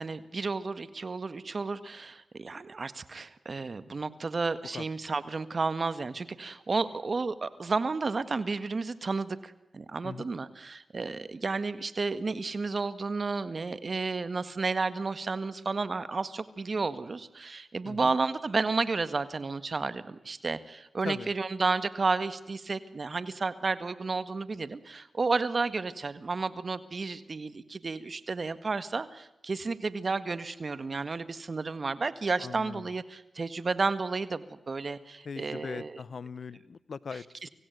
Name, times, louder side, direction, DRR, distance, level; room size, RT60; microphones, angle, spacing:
voice 1, 0.0-36.0 37.4-37.5, right 4 dB, 55° right, 13 dB, 1.7 m, -32 dB
voice 2, 17.8-18.1 21.0-21.3 32.4-32.9 35.2-37.5, left 5 dB, 70° left, 19 dB, 0.8 m, -40 dB
25.0 x 16.5 x 9.4 m, 0.95 s
cardioid pair, 40°, 0 cm